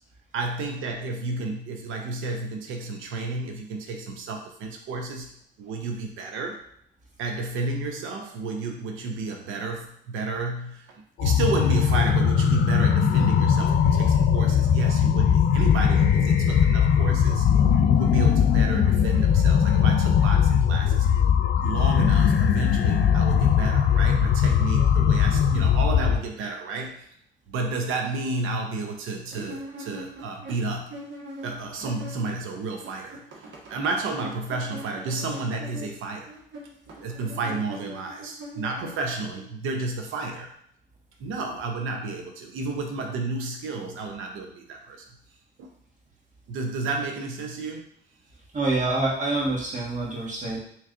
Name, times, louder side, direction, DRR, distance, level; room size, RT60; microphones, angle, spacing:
voice 1, 0.3-5.3 5.6-6.6 7.2-17.5 18.0-21.1 21.6-27.1 27.5-31.0 31.4-33.2 33.7-36.3 37.0-40.5 41.2-45.0 45.6-45.7 46.5-47.8, right 3 dB, 85° right, 2 dB, 0.7 m, -31 dB
sound 1, 11.2-26.2, left 8 dB, 65° left, 0.5 m, -20 dB
sound 2, 29.3-32.5 32.7-39.4, right 1 dB, 65° right, 1.2 m, -41 dB
voice 2, 48.5-50.6, right 2 dB, 40° right, -4 dB, 1.5 m, -26 dB
3.3 x 3.1 x 3.8 m, 0.70 s
cardioid pair, 90°, 20 cm